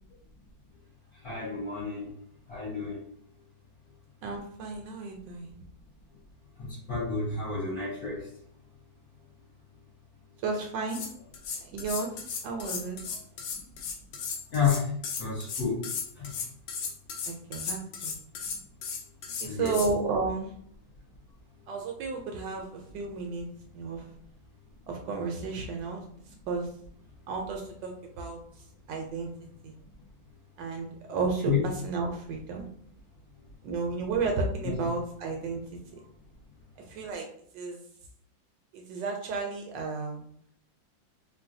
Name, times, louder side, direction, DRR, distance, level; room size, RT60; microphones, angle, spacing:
voice 1, 1.2-2.1 2.5-3.0 6.6-8.3 14.5-14.9 15.2-15.8 16.1-16.4 19.4-19.7 31.4-31.6 34.6-34.9, left 6 dB, 55° left, -11 dB, 1.6 m, -30 dB
voice 2, 4.2-5.6 10.4-11.0 11.6-12.2 12.4-13.0 17.3-18.1 19.4-20.5 21.7-23.5 23.7-24.0 24.9-26.0 26.5-26.7 27.3-28.4 28.9-29.3 29.6-29.7 30.6-32.7 33.6-35.6 36.9-37.3 37.5-37.8 38.7-40.2, right 4 dB, 75° right, 2 dB, 1.1 m, -32 dB
sound 1, 10.6-10.7 10.9-19.9, left 5 dB, 70° left, 1.2 m, -36 dB
3.8 x 2.2 x 2.6 m, 0.65 s
omnidirectional pair, 2.1 m